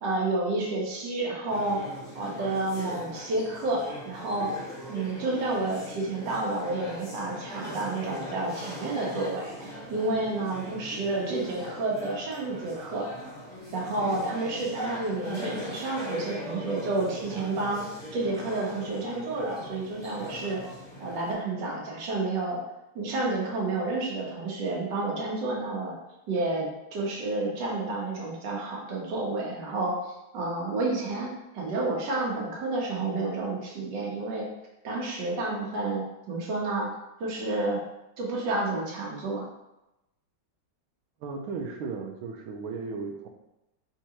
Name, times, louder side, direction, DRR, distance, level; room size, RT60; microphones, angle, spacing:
voice 1, 0.0-1.8 2.1-4.5 4.9-13.1 13.7-17.9 18.1-20.6 21.0-22.6 22.9-25.9 26.3-34.4 34.8-36.9 37.2-37.8 38.2-39.4, right 2 dB, 65° right, -2 dB, 1.6 m, -30 dB
sound 1, 1.5-21.3, equal, 5° left, 0.8 m, -40 dB
voice 2, 41.2-43.3, right 4 dB, 90° right, 3 dB, 1.5 m, -35 dB
4.5 x 3.7 x 2.9 m, 0.93 s
omnidirectional pair, 2.2 m